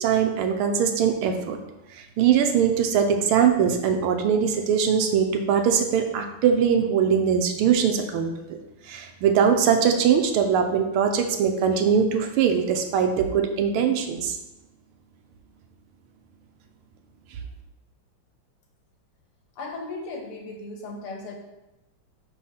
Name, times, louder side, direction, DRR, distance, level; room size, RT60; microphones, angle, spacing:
voice 1, 0.0-1.6 1.9-8.6 8.9-14.3, right 7 dB, 85° right, 5 dB, 1.5 m, -22 dB
voice 2, 19.6-21.4, left 3 dB, 85° left, 0 dB, 2.2 m, -36 dB
5.4 x 4.3 x 5.6 m, 0.96 s
omnidirectional pair, 2.4 m